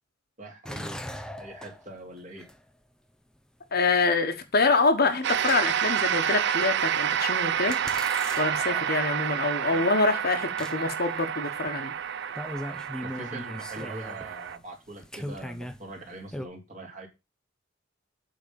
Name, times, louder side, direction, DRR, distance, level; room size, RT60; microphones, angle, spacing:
voice 1, 0.4-1.0 1.4-2.5 9.7-9.9 13.0-17.1, right 1 dB, 40° right, 2.7 m, -42 dB
sound 1, 0.7-2.7 3.7-3.8 5.1-6.3 7.1-7.2 7.7-10.0 10.4-10.8 11.1-11.2 11.7-11.8 12.0-12.1 12.4-16.5, equal, 5° left, 0.7 m, -40 dB
voice 2, 3.7-7.8 8.4-11.9, left 3 dB, 50° left, 1.3 m, -25 dB
sound 2, 5.2-14.6, right 9 dB, 60° right, 0.5 m, -29 dB
8.5 x 3.9 x 7.0 m
head